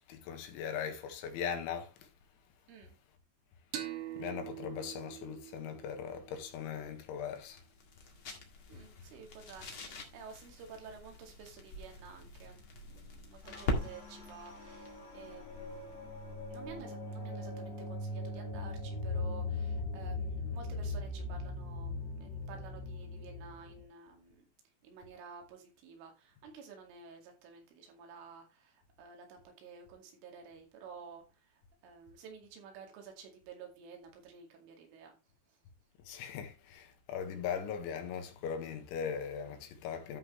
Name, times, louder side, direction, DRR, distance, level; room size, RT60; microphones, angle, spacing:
voice 1, 0.1-2.1 4.2-7.6 36.1-40.2, left 7 dB, 80° left, 3.9 m, -39 dB
sound 1, 3.7-7.1, right 12 dB, 65° right, 2.1 m, -45 dB
sound 2, 6.3-16.9, left 2 dB, 50° left, 1.5 m, -44 dB
voice 2, 8.7-16.1 16.5-24.5 24.8-35.2 35.5-35.6, right 6 dB, 90° right, 4.8 m, -52 dB
sound 3, 13.4-23.8, left 2 dB, 25° left, 1.5 m, -40 dB
13.0 x 5.9 x 3.2 m
omnidirectional pair, 5.5 m